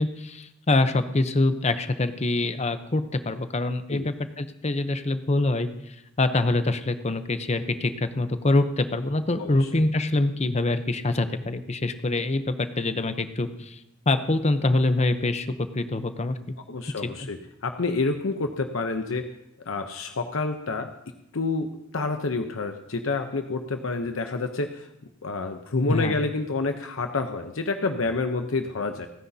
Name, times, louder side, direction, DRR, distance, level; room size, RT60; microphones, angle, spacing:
voice 1, 0.0-13.8 14.1-16.5 17.0-17.3 25.9-26.1, left 2 dB, 35° left, 10 dB, 0.8 m, -25 dB
voice 2, 9.4-9.7 16.7-19.2 19.7-20.9 21.3-24.9 25.2-29.1, left 3 dB, 80° left, 6 dB, 0.8 m, -28 dB
29.5 x 9.9 x 2.8 m, 0.84 s
head